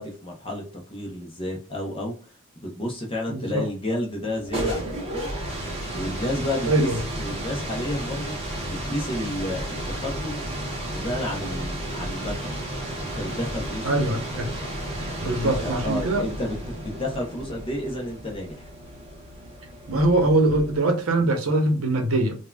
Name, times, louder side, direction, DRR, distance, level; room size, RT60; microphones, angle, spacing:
voice 1, 0.0-5.3 5.9-6.9 7.2-8.4 8.6-9.7 10.0-10.4 10.8-12.5 13.0-14.2 15.0-18.7, left 1 dB, 25° left, 0.6 m, -31 dB
voice 2, 3.3-3.6 6.6-7.0 13.8-14.5 15.2-16.2 19.9-22.4, right 2 dB, 90° right, 0.8 m, -22 dB
sound 1, 4.2-20.9, right 1 dB, 30° right, 0.8 m, -33 dB
3.4 x 2.2 x 2.2 m
head